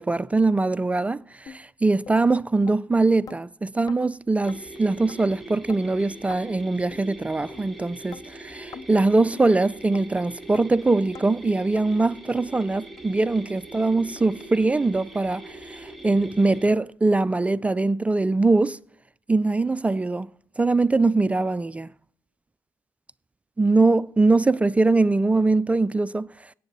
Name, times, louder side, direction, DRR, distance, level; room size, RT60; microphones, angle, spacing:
voice 1, 0.0-18.8 19.3-20.3 20.6-21.9 23.6-26.3, right 3 dB, 15° right, 0.3 m, -22 dB
sound 1, 1.5-1.6 2.1-2.2 2.7-2.8 3.3-3.4 3.9-4.0 4.5-4.6 5.1-5.2 5.7-5.8 6.3-6.4 6.9-7.0 7.5-7.6 8.1-8.2 8.7-8.9 9.3-9.5 9.9-10.0 10.5-10.7 11.1-11.3 11.8-11.9 12.4-12.5 13.0-13.1 13.6-13.7 14.2-14.3, left 7 dB, 50° left, 0.5 m, -43 dB
sound 2, 4.4-16.7, right 1 dB, ahead, 2.3 m, -42 dB
18.0 x 7.9 x 2.7 m
hypercardioid pair, 60°, 8 cm